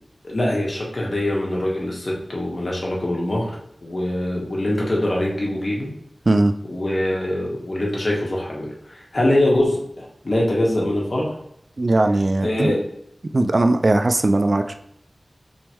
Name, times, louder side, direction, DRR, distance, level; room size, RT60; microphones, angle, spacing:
voice 1, 0.2-3.6 3.8-5.9 6.7-11.4 12.4-12.8, left 1 dB, 55° left, -3 dB, 1.4 m, -23 dB
voice 2, 11.8-12.7 13.3-14.7, right 2 dB, 55° right, 6 dB, 0.4 m, -18 dB
3.6 x 3.1 x 4.4 m, 0.73 s
wide cardioid pair, 70°, 0 cm